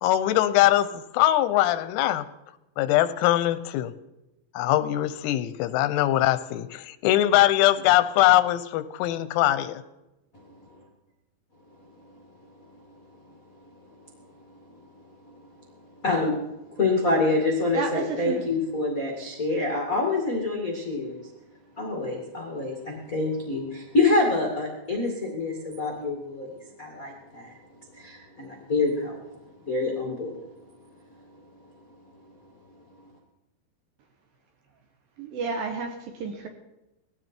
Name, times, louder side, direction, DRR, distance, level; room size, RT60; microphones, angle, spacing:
voice 1, 0.0-2.3 2.8-3.9 4.6-9.8, left 14 dB, 90° left, 13 dB, 3.6 m, -22 dB
voice 2, 16.0-16.4 16.7-21.2 21.8-27.6 27.9-29.2 29.6-30.4, left 3 dB, 65° left, 0 dB, 0.8 m, -26 dB
voice 3, 17.7-18.4 35.2-36.5, right 5 dB, 70° right, 5 dB, 2.2 m, -31 dB
19.5 x 15.0 x 4.5 m, 0.96 s
omnidirectional pair, 6.0 m